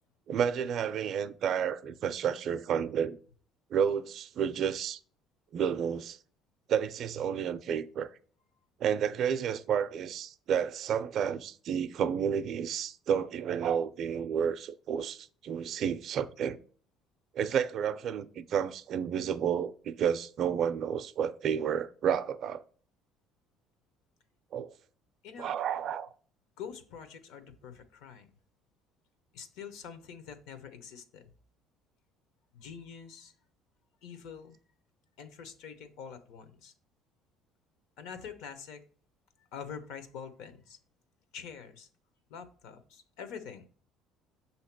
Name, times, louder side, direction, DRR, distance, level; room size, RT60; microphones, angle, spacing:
voice 1, 0.3-3.2 3.7-5.0 5.5-6.2 6.7-8.1 8.8-16.6 17.3-22.6 24.5-24.7 25.4-26.1, right 8 dB, 45° right, 0.4 m, -31 dB
voice 2, 26.6-28.3 29.3-31.3 32.5-33.3 34.0-34.6 35.2-36.7 38.0-38.8 39.5-40.8 41.3-41.9 42.3-43.7, left 7 dB, 75° left, 0.9 m, -45 dB
6.6 x 2.8 x 5.8 m
cardioid pair, 160°, 0 cm